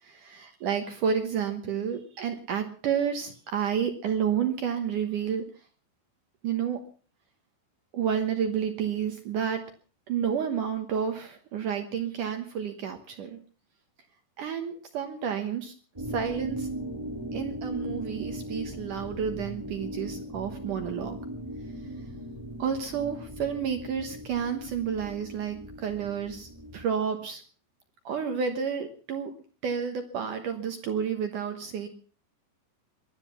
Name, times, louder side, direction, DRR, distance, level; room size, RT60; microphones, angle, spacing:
voice 1, 0.0-5.5 6.4-6.8 7.9-9.6 10.1-13.4 14.4-15.8 16.1-16.7 17.3-21.2 22.6-27.4 28.0-29.3 29.6-31.9, right 7 dB, 70° right, 7 dB, 1.9 m, -30 dB
sound 1, 15.9-26.8, equal, 10° right, 1.4 m, -38 dB
20.5 x 12.0 x 5.8 m, 0.42 s
omnidirectional pair, 5.5 m